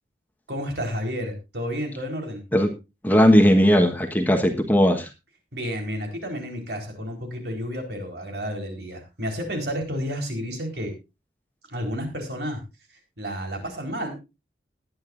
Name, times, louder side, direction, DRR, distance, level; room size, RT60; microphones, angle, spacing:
voice 1, 0.5-2.4 5.5-10.9 11.7-12.6 12.9-14.1, equal, 70° right, 3 dB, 4.2 m, -31 dB
voice 2, 3.0-5.1, equal, 10° left, 4 dB, 1.3 m, -17 dB
20.0 x 9.7 x 2.6 m, 0.27 s
head